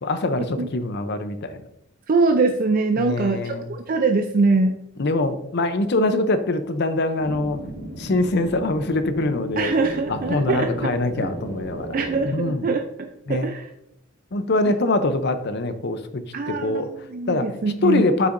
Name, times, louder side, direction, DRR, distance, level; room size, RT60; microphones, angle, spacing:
voice 1, 0.0-1.7 3.0-3.7 5.0-7.6 8.0-9.7 10.1-12.0 12.2-12.7 13.3-13.5 14.3-16.2 16.5-16.9 17.3-17.5 17.8-18.3, left 2 dB, 50° left, 10 dB, 0.6 m, -23 dB
voice 2, 2.1-4.8 9.6-11.0 11.9-13.7 14.7-14.8 16.3-18.1, right 3 dB, 40° right, 5 dB, 0.4 m, -23 dB
sound 1, 7.2-12.3, right 1 dB, 80° right, 2.5 m, -35 dB
8.0 x 5.7 x 2.5 m, 0.81 s
head